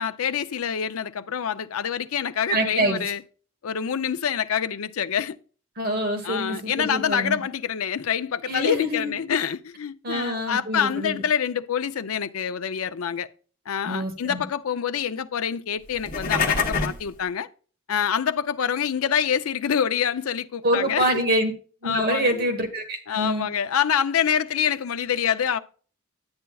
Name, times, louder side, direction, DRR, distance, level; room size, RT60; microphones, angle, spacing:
voice 1, 0.0-3.2 3.6-5.4 6.2-13.3 13.7-17.5 17.9-21.2 21.8-22.4 23.1-25.6, left 8 dB, 80° left, 0.5 m, -26 dB
voice 2, 2.5-3.0 5.8-7.4 8.5-9.1 10.0-11.1 13.9-14.4 20.6-21.5 21.8-23.5, right 1 dB, 45° right, 1.2 m, -25 dB
sound 1, 15.9-17.1, left 5 dB, 40° left, 1.1 m, -25 dB
10.5 x 8.8 x 2.3 m
head